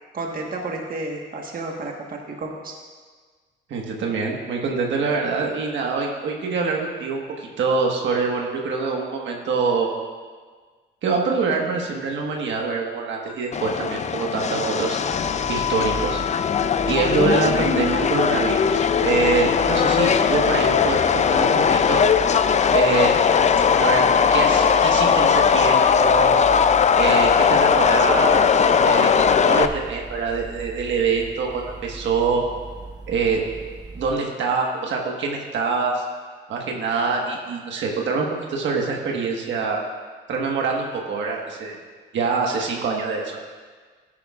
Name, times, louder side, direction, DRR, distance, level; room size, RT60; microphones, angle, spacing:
voice 1, 0.1-2.8, right 2 dB, 45° right, 0 dB, 1.5 m, -31 dB
voice 2, 3.7-9.9 11.0-15.0 15.3-16.2 16.8-22.0 22.7-23.1 23.8-24.0 24.3-26.4 27.0-32.4 33.1-33.4 33.9-36.0 36.5-39.8 40.3-41.8 42.1-43.4, right 4 dB, 70° right, 0 dB, 1.5 m, -25 dB
Subway metro underground, 13.5-29.7, left 6 dB, 35° left, 0.5 m, -19 dB
sound 1, 15.1-34.2, right 3 dB, 20° right, 1.1 m, -38 dB
13.5 x 11.0 x 2.5 m, 1.5 s
cardioid pair, 90°, 20 cm